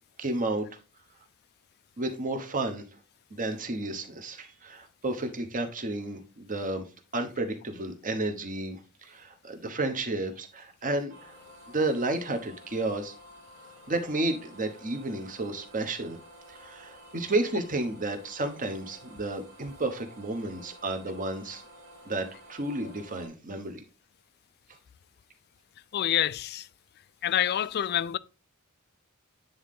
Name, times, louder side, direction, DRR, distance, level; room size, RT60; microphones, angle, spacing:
voice 1, 0.2-0.7 2.0-2.8 3.3-6.8 7.1-11.3 11.7-13.1 13.9-16.2 16.5-21.6 22.1-23.8, right 2 dB, 40° right, 1.1 m, -32 dB
sound 1, 11.1-23.3, equal, 90° right, 2.5 m, -52 dB
voice 2, 25.9-26.7 27.2-28.2, left 11 dB, 50° left, 0.3 m, -27 dB
9.3 x 3.8 x 3.7 m
head